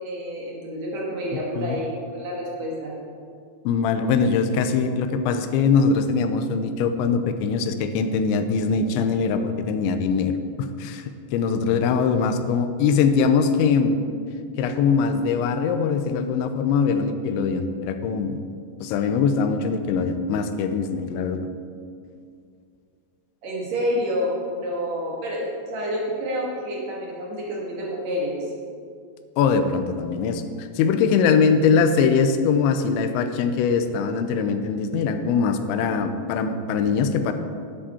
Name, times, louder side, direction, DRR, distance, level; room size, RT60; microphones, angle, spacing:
voice 1, 0.0-3.0 23.4-28.4, equal, 65° right, -3 dB, 1.8 m, -28 dB
voice 2, 3.7-10.3 10.6-14.0 14.6-18.4 18.8-21.4 29.4-37.3, left 5 dB, 85° left, 8 dB, 2.9 m, -22 dB
11.0 x 10.0 x 4.2 m, 2.2 s
omnidirectional pair, 5.2 m